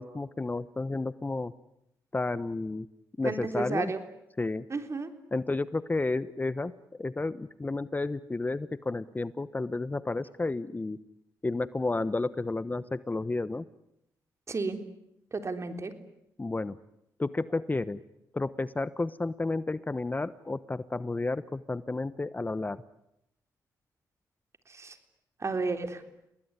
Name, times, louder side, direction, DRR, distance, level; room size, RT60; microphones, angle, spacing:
voice 1, 0.0-1.5 2.1-2.9 3.2-3.9 4.4-4.6 5.3-6.7 7.0-11.0 11.4-13.6 16.4-16.8 17.2-18.0 18.3-22.8, left 3 dB, 25° left, 16 dB, 1.1 m, -31 dB
voice 2, 3.2-4.0 4.7-5.1 14.5-14.8 15.3-15.9 24.7-25.0 25.4-26.0, right 3 dB, 40° right, 8 dB, 3.7 m, -32 dB
29.5 x 19.5 x 9.8 m, 0.83 s
cardioid pair, 65°, 7 cm